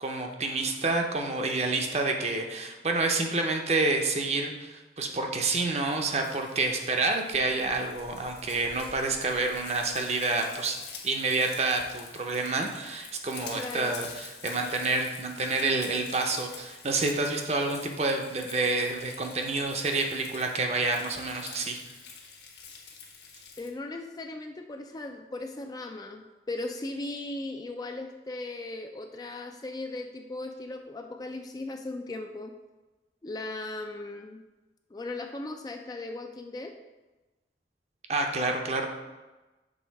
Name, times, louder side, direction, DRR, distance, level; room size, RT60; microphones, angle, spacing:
voice 1, 0.0-21.8 38.1-38.9, right 3 dB, 35° right, 3 dB, 0.6 m, -28 dB
Frying (food), 5.8-23.7, left 5 dB, 70° left, 1.1 m, -47 dB
voice 2, 13.5-14.0 23.6-32.5 33.2-34.4 34.9-36.7, left 2 dB, 20° left, 4 dB, 0.3 m, -37 dB
6.3 x 3.5 x 4.6 m, 1.1 s
head